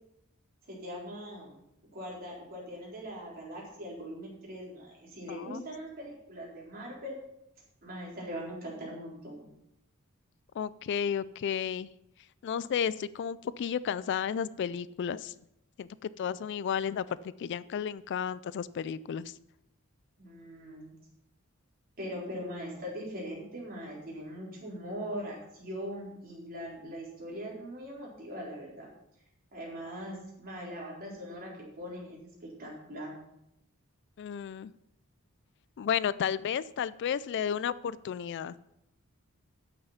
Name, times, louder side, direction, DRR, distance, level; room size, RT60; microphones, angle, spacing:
voice 1, 0.7-1.6 1.9-7.2 7.8-9.5 20.2-20.9 22.0-28.9 29.5-31.5 31.8-33.1, equal, 45° right, -4 dB, 4.0 m, -41 dB
voice 2, 5.3-5.7 10.6-11.9 12.4-15.3 15.8-19.3 34.2-34.7 35.8-38.8, left 8 dB, 55° left, 18 dB, 0.3 m, -33 dB
9.7 x 8.1 x 5.7 m, 0.81 s
head